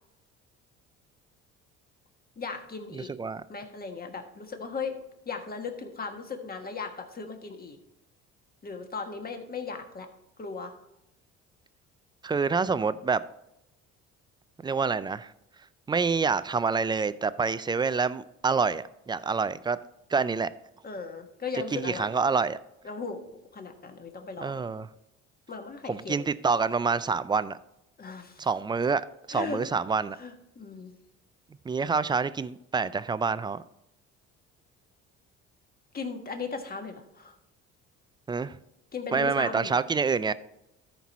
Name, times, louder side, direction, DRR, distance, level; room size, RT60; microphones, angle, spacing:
voice 1, 2.4-3.1 3.5-5.0 5.2-7.8 8.6-10.1 10.4-10.7 20.8-22.2 22.8-23.2 23.5-24.6 25.5-26.3 28.0-28.5 29.3-29.6 30.2-30.9 35.9-37.4 38.9-39.8, left 4 dB, 30° left, 5 dB, 1.4 m, -37 dB
voice 2, 2.9-3.4 12.2-13.2 14.6-15.3 15.9-19.8 20.1-20.5 21.7-22.6 24.4-24.9 25.9-27.6 28.4-29.0 29.3-30.2 31.7-33.6 38.3-38.6 39.1-40.3, right 5 dB, 15° right, 15 dB, 0.3 m, -27 dB
13.5 x 4.6 x 4.2 m, 0.85 s
cardioid pair, 90°, 31 cm